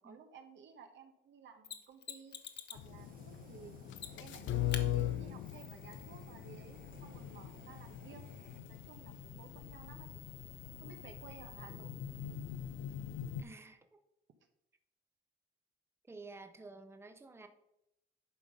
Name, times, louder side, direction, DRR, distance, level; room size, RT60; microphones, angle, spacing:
voice 1, 0.0-2.4 2.7-3.8 4.2-8.3 8.7-10.1 10.8-12.0, right 6 dB, 70° right, 7 dB, 1.1 m, -55 dB
Mechanisms, 1.6-2.9 3.9-4.4 4.7-4.9 7.6-7.7, left 8 dB, 55° left, 1.0 m, -45 dB
sound 1, 2.8-13.4, left 11 dB, 75° left, 0.5 m, -41 dB
Fire, 3.0-8.6, right 6 dB, 45° right, 0.7 m, -60 dB
voice 2, 13.4-14.0 16.1-17.5, right 3 dB, 10° right, 8 dB, 0.7 m, -51 dB
11.0 x 3.9 x 5.1 m, 0.84 s
cardioid pair, 90°, 20 cm